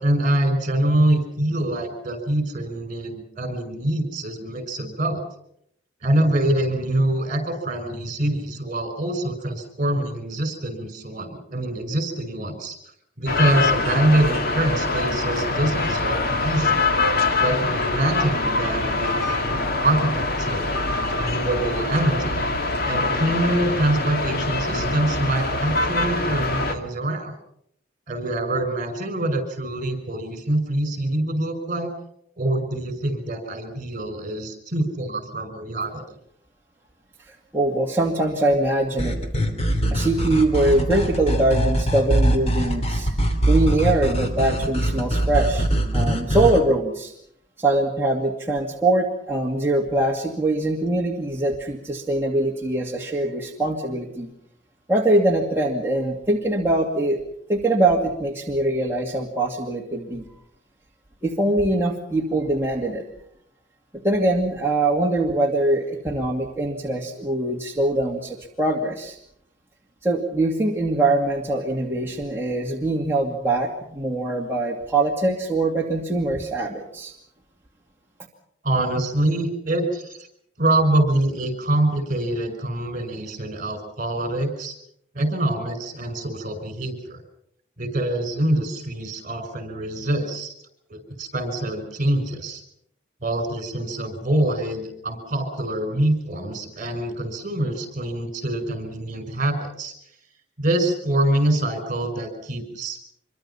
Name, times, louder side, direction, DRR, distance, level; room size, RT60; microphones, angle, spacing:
voice 1, 0.0-5.2 6.0-12.8 13.2-16.8 17.4-20.7 21.1-22.4 22.8-27.3 28.1-31.9 32.4-36.0 78.6-80.3 80.6-84.7 85.1-87.2 87.8-90.5 90.9-92.6 93.2-99.9 100.6-103.0, right 1 dB, 45° right, 9 dB, 5.8 m, -25 dB
sound 1, 13.3-26.7, left 3 dB, 55° left, 2.3 m, -24 dB
voice 2, 37.3-39.2 39.9-43.1 43.5-45.7 45.9-47.1 47.6-54.3 54.9-57.2 57.5-60.3 61.2-63.0 64.0-69.2 70.0-77.1, right 2 dB, 15° right, -2 dB, 2.3 m, -23 dB
sound 2, 39.0-46.6, right 1 dB, 35° left, 3.2 m, -22 dB
26.0 x 24.0 x 5.8 m, 0.71 s
head